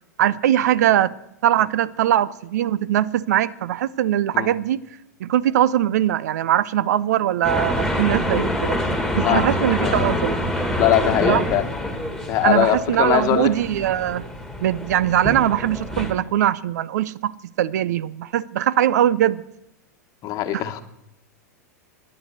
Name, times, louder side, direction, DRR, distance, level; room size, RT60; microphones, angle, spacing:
voice 1, 0.2-1.1 1.4-4.8 5.2-8.8 9.2-10.4 11.3-11.4 12.4-14.2 14.6-17.3 17.6-19.4 20.5-20.6, right 12 dB, 70° right, 0.5 m, -21 dB
sound 1, 7.4-16.1, left 1 dB, ahead, 2.0 m, -26 dB
voice 2, 9.2-9.5 9.8-10.2 10.8-11.7 12.3-13.5 20.2-20.8, left 11 dB, 40° left, 1.2 m, -21 dB
12.0 x 9.6 x 6.5 m
hypercardioid pair, 115°, 9 cm